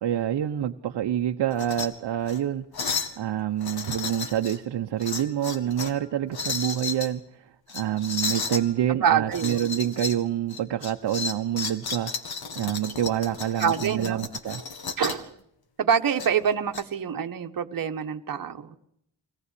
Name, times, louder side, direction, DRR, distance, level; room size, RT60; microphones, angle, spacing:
voice 1, 0.0-12.1 12.5-14.6, right 11 dB, 65° right, 5 dB, 0.9 m, -27 dB
sound 1, 1.5-1.9 2.2-2.4 2.7-3.2 3.6-4.6 5.0-6.0 6.3-7.1 7.7-8.6 9.3-10.2 10.5-15.3 16.2-16.8, left 5 dB, 55° left, 2.1 m, -33 dB
voice 2, 8.9-9.7 13.6-14.3 15.0-15.3 15.8-18.8, right 7 dB, 50° right, 5 dB, 1.4 m, -26 dB
23.5 x 18.5 x 8.3 m, 0.75 s
wide cardioid pair, 175°, 44 cm